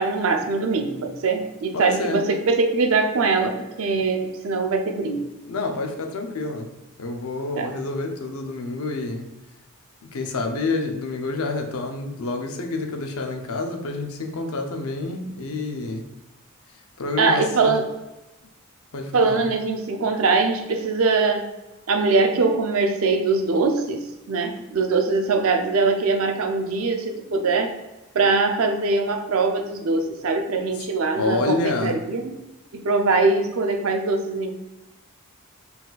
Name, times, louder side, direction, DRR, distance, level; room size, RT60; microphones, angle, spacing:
voice 1, 0.0-5.3 7.6-7.7 17.2-17.9 19.1-21.5 21.9-27.7 28.1-32.4 32.7-34.5, right 3 dB, 70° right, 5 dB, 0.5 m, -22 dB
voice 2, 1.7-2.2 5.5-6.7 7.0-9.3 10.1-16.0 17.0-17.8 18.9-19.5 31.2-32.0, left 3 dB, 75° left, 4 dB, 0.6 m, -28 dB
4.1 x 2.3 x 4.0 m, 1.0 s
head